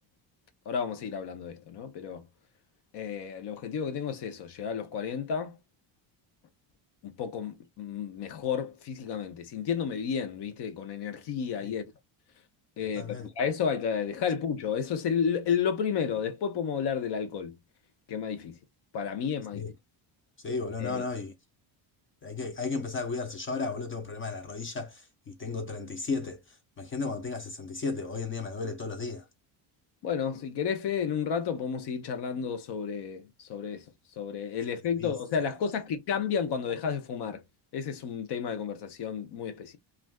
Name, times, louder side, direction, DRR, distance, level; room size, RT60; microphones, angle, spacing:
voice 1, 0.7-2.3 2.9-5.6 7.0-11.8 12.8-13.1 13.4-17.6 18.1-18.6 18.9-19.7 20.8-21.0 30.0-33.9 34.2-37.4 37.7-39.8, left 7 dB, 55° left, 0.7 m, -32 dB
voice 2, 13.0-13.3 19.5-19.7 20.4-21.3 22.2-29.3 35.0-35.1, left 4 dB, 30° left, 0.3 m, -34 dB
3.2 x 2.5 x 2.2 m
cardioid pair, 155°, 48 cm